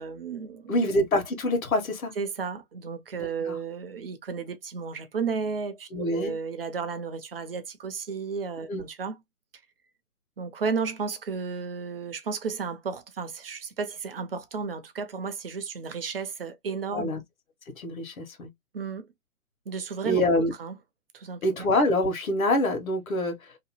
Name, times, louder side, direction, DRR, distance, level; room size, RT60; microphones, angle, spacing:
voice 1, 0.0-0.9 2.2-9.2 10.4-17.2 18.7-19.1 19.7-20.8 21.1-21.7, right 5 dB, 45° right, 0.5 m, -33 dB
voice 2, 0.7-2.1 3.2-3.6 5.9-6.3 8.7-8.8 16.9-17.2 17.8-18.5 20.0-20.5 21.4-23.3, left 1 dB, 70° left, 1.2 m, -25 dB
2.8 x 2.1 x 2.9 m
hypercardioid pair, 150°, 43 cm